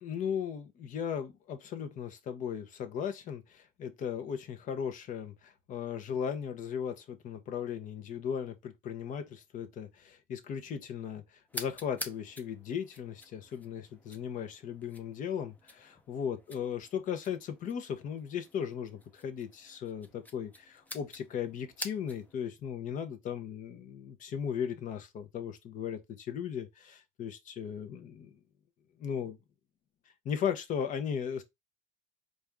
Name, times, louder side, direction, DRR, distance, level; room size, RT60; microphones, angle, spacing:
voice 1, 0.0-11.2 11.5-28.3 29.0-29.4 30.2-31.4, left 8 dB, 40° left, 0.8 m, -37 dB
sound 1, 11.5-22.4, left 1 dB, 10° left, 0.6 m, -48 dB
4.3 x 2.5 x 3.5 m
supercardioid pair, 125°, 21 cm